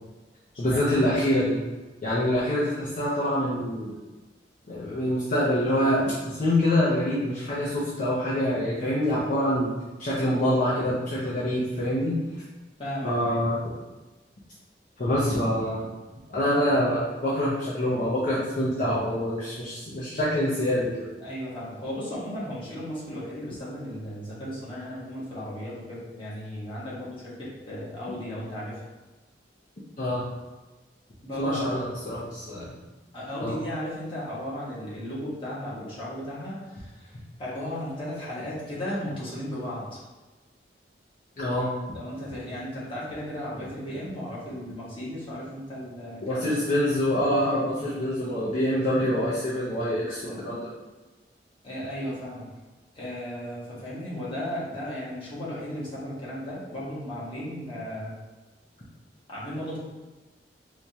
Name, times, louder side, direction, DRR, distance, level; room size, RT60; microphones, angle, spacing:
voice 1, 0.6-1.6 2.0-4.0 4.7-9.7 10.0-12.2 13.0-13.6 15.0-15.8 16.3-21.1 30.0-30.2 31.4-32.8 33.4-33.6 41.4-42.0 46.2-50.7, left 1 dB, 45° left, -9 dB, 0.7 m, -25 dB
voice 2, 12.8-13.4 16.4-16.5 21.2-28.8 31.2-31.6 33.1-40.0 41.9-46.5 47.7-48.0 50.2-50.4 51.6-52.5 52.9-58.2 59.3-59.8, equal, 30° left, -8 dB, 1.2 m, -35 dB
4.6 x 2.3 x 2.8 m, 1.2 s
head